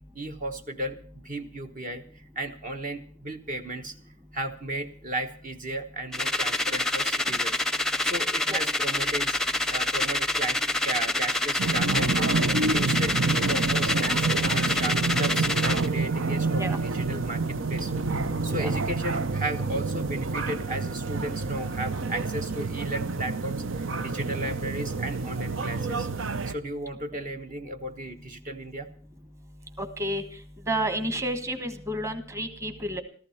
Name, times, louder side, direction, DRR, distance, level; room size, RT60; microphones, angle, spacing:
voice 1, 0.1-3.9 4.3-7.5 8.0-9.4 9.7-26.1 26.5-28.9, right 1 dB, 40° right, 5 dB, 1.2 m, -35 dB
Worst Sound in the World Contest E, 6.1-15.9, left 2 dB, 5° left, 0.7 m, -27 dB
sound 1, 11.6-26.5, right 3 dB, 75° right, 0.8 m, -28 dB
voice 2, 29.8-30.2 30.7-33.0, right 1 dB, 15° right, 9 dB, 1.4 m, -30 dB
15.0 x 14.5 x 5.8 m, 0.44 s
head